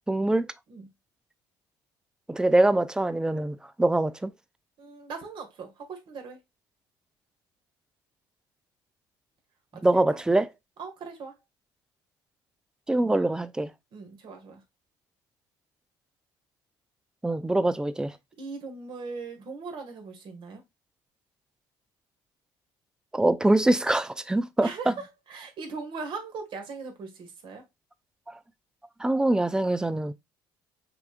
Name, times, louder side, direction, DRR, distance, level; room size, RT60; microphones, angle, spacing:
voice 1, 0.1-0.5 2.3-4.3 9.8-10.5 12.9-13.7 17.2-18.1 23.1-24.9 28.3-28.4 29.0-30.1, right 2 dB, 5° right, 0.5 m, -24 dB
voice 2, 4.8-6.4 9.7-10.2 10.8-11.4 13.9-14.6 18.4-20.6 24.6-27.6, right 4 dB, 55° right, 1.7 m, -39 dB
5.9 x 3.5 x 2.4 m
supercardioid pair, 85°, 10 cm